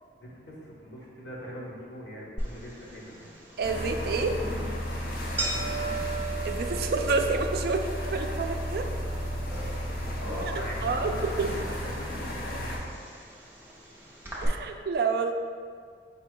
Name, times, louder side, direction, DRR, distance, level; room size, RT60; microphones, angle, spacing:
voice 1, 0.2-3.3 5.4-6.1 10.2-13.0, equal, 75° left, -5 dB, 1.1 m, -41 dB
sound 1, 2.4-14.5, right 3 dB, 10° right, 0.7 m, -39 dB
sound 2, 3.6-12.8, equal, 50° left, 0.7 m, -33 dB
voice 2, 3.6-4.4 6.4-8.9 10.8-11.5 14.4-15.3, right 4 dB, 55° right, 5 dB, 0.3 m, -28 dB
5.1 x 2.3 x 4.5 m, 2.1 s
head